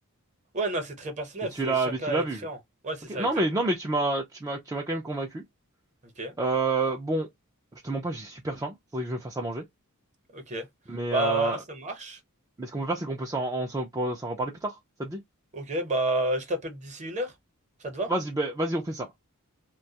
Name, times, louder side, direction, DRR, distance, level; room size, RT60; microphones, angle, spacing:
voice 1, 0.5-2.6 2.8-3.3 6.2-6.3 10.3-10.7 11.1-12.2 15.5-17.3 17.8-18.1, right 2 dB, 35° right, 0.8 m, -30 dB
voice 2, 1.5-2.5 3.1-5.4 6.4-7.3 7.8-9.7 10.9-11.6 12.6-15.2 18.1-19.1, right 2 dB, 15° right, 0.4 m, -29 dB
2.3 x 2.2 x 2.7 m
head